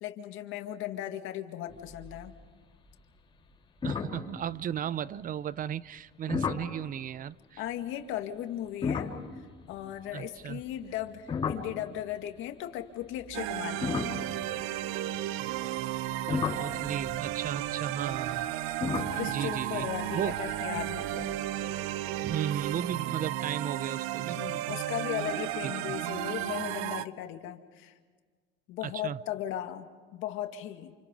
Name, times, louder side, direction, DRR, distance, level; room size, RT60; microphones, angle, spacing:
voice 1, 0.0-2.3 7.6-9.1 9.4-14.0 19.1-21.4 24.4-27.9 28.7-30.9, left 12 dB, 75° left, 2.1 m, -37 dB
sound 1, 1.7-2.3 2.6-3.0 3.4-3.5 3.8-5.1 6.3-6.8 8.7-12.3 13.0-15.3 15.9-21.2, left 5 dB, 25° left, 4.3 m, -36 dB
voice 2, 3.8-7.6 10.1-10.6 16.3-18.5 19.3-19.9 20.1-20.3 22.2-24.4 25.6-26.0 28.8-29.2, right 9 dB, 40° right, 0.6 m, -35 dB
sound 2, 13.3-27.0, right 13 dB, 80° right, 0.8 m, -34 dB
29.0 x 28.5 x 5.4 m
supercardioid pair, 100°, 21 cm